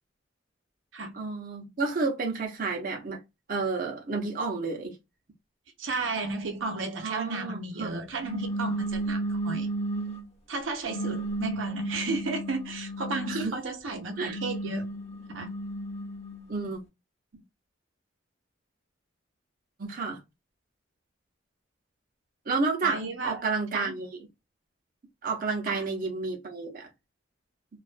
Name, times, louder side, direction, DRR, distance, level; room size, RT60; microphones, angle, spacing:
voice 1, 1.1-3.2 3.5-5.0 7.0-7.9 13.3-13.5 14.2-14.4 16.5-16.8 19.8-20.2 22.5-24.1 25.2-26.9, right 4 dB, 50° right, 0.6 m, -31 dB
voice 2, 5.8-9.7 10.5-14.9 15.3-15.5 22.8-23.4 23.7-23.9 25.7-25.9, right 3 dB, 90° right, 0.7 m, -33 dB
sound 1, 8.2-10.3 10.9-13.6 14.1-16.4, right 1 dB, 35° left, 0.7 m, -33 dB
2.3 x 2.2 x 2.4 m
head